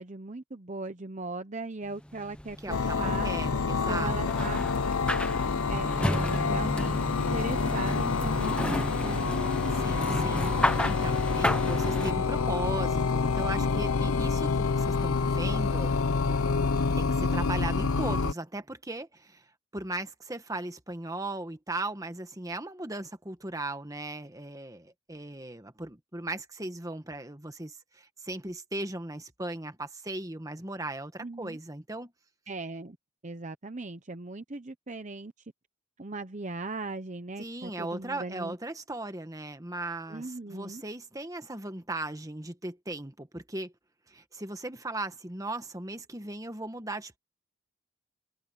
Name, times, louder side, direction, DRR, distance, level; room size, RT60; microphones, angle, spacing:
voice 1, 0.0-3.3 3.9-4.7 5.7-8.6 8.9-9.6 31.2-31.6 32.5-33.0 33.2-35.3 36.0-38.6 40.1-40.8, right 3 dB, 35° right, 0.8 m, -38 dB
sound 1, 2.1-12.1, left 1 dB, 5° left, 1.0 m, -33 dB
voice 2, 2.6-4.3 9.8-10.5 10.8-15.9 17.0-19.4 19.7-32.1 37.4-43.7 44.1-47.2, right 2 dB, 15° right, 1.4 m, -37 dB
sound 2, 2.7-18.3, left 4 dB, 85° left, 0.7 m, -28 dB
head